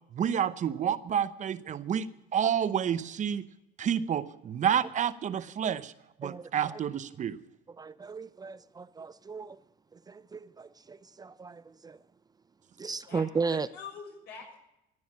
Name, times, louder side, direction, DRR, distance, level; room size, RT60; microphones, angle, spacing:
voice 1, 0.1-3.5 3.8-5.9 6.2-7.4, right 8 dB, 45° right, 0.8 m, -29 dB
voice 2, 6.2-6.8 7.8-9.6 10.1-12.0 12.8-13.7, right 5 dB, 25° right, 0.5 m, -36 dB
voice 3, 13.1-14.6, left 5 dB, 75° left, 6.6 m, -45 dB
15.5 x 9.4 x 8.5 m
cardioid pair, 110°, 17 cm